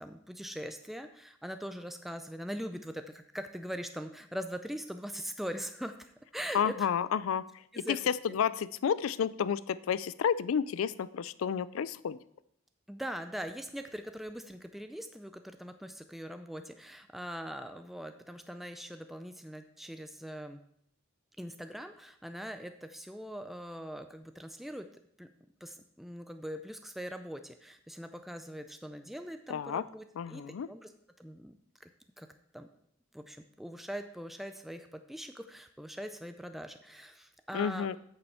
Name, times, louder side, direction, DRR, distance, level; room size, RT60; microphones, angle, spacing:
voice 1, 0.0-6.9 7.7-8.0 8.3-8.4 12.9-20.6 21.4-24.9 25.2-25.3 25.6-30.9 31.2-31.5 31.8-31.9 32.2-32.3 32.5-32.7 33.1-37.9, equal, ahead, 7 dB, 0.4 m, -42 dB
voice 2, 6.5-7.4 7.9-12.2 29.5-29.8 30.2-30.7 37.5-38.0, left 7 dB, 75° left, 18 dB, 0.4 m, -31 dB
8.7 x 6.8 x 4.3 m, 0.71 s
head